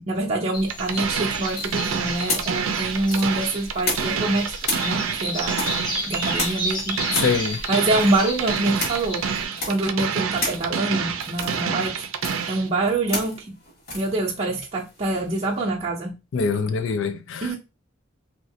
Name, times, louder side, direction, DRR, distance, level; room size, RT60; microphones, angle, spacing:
voice 1, 0.0-5.6 6.1-7.2 7.7-9.2 9.6-12.0 12.5-13.5 13.9-16.2 17.4-17.6, right 2 dB, 30° right, 0.6 m, -25 dB
sound 1, 0.5-9.5, left 1 dB, 20° left, 0.9 m, -33 dB
sound 2, 0.7-12.7, right 6 dB, 85° right, 0.5 m, -28 dB
sound 3, 1.5-4.3 4.6-15.6, left 2 dB, 50° left, 1.6 m, -33 dB
voice 2, 7.2-7.6 16.3-17.6, left 5 dB, 70° left, 0.4 m, -24 dB
3.0 x 2.8 x 2.7 m
head